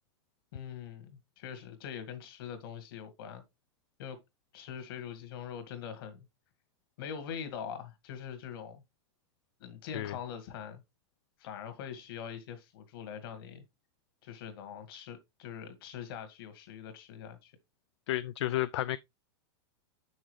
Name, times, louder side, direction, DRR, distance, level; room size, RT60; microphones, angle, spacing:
voice 1, 0.5-3.4 4.0-4.2 4.5-6.3 7.0-8.8 9.6-10.8 11.4-13.6 14.2-17.5, left 8 dB, 55° left, 1.9 m, -43 dB
voice 2, 18.1-19.0, left 15 dB, 70° left, 0.4 m, -31 dB
7.0 x 6.4 x 3.2 m
supercardioid pair, 170°, 15 cm